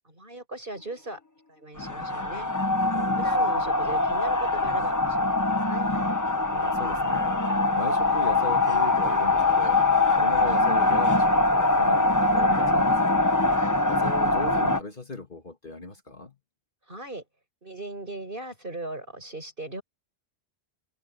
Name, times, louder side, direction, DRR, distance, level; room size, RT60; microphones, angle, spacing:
voice 1, 0.0-1.2 1.5-2.5 3.2-5.3 5.7-5.9 16.9-17.2 17.6-19.8, right 2 dB, 50° right, 6.4 m, -38 dB
sound 1, 1.8-14.8, left 2 dB, 15° left, 1.1 m, -23 dB
voice 2, 2.9-3.5 6.5-9.8 10.2-13.2 13.9-16.4, left 2 dB, 50° left, 2.2 m, -39 dB
omnidirectional pair, 1.1 m